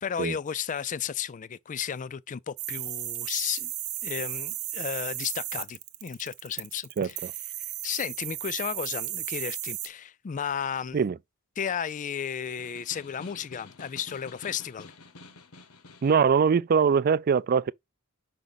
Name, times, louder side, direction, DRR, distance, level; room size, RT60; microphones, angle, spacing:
voice 1, 0.0-3.7 4.0-7.3 7.8-11.0 11.6-14.9, left 8 dB, 35° left, 0.4 m, -33 dB
sound 1, 2.6-9.9, right 14 dB, 75° right, 0.8 m, -35 dB
voice 2, 7.0-7.3 10.9-11.2 16.0-17.7, right 6 dB, 45° right, 0.3 m, -22 dB
Snare drum, 12.4-16.3, left 3 dB, 90° left, 1.0 m, -49 dB
5.9 x 5.1 x 4.0 m
head